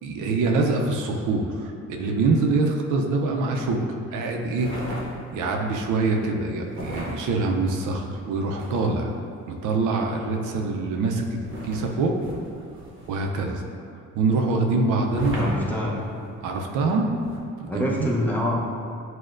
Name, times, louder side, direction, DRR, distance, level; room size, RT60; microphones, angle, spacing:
voice 1, 0.0-3.8 4.1-4.7 5.3-9.1 9.5-11.4 11.6-12.2 13.1-13.6 14.1-15.4 16.4-17.1 17.6-18.1, right 3 dB, 85° right, 2 dB, 0.5 m, -24 dB
sound 1, 4.5-5.5 6.7-9.1 11.4-13.3 15.1-16.3 17.2-17.4, right 1 dB, 40° right, 0.9 m, -36 dB
voice 2, 15.4-15.9 17.7-18.5, left 1 dB, 5° left, -5 dB, 0.7 m, -25 dB
6.2 x 2.1 x 2.5 m, 2.5 s
cardioid pair, 90°, 30 cm